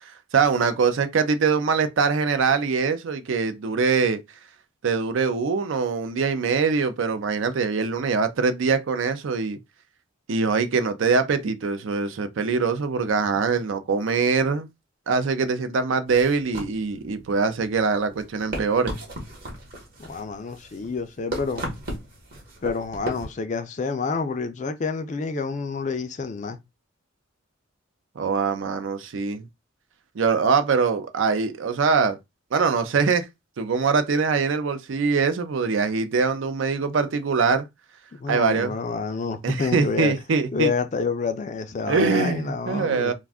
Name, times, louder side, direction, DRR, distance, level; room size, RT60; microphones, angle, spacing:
voice 1, 0.3-4.2 4.8-9.6 10.3-14.7 15.1-18.9 28.2-29.5 30.2-32.2 32.5-33.3 33.6-37.7 38.3-38.8 39.4-40.7 41.9-43.1, right 5 dB, 70° right, 0.4 m, -23 dB
sound 1, 16.1-23.3, right 1 dB, 45° right, 0.9 m, -36 dB
voice 2, 20.1-21.7 22.6-26.6 38.1-40.1 40.5-43.1, left 4 dB, 35° left, 0.3 m, -28 dB
2.4 x 2.3 x 3.4 m
head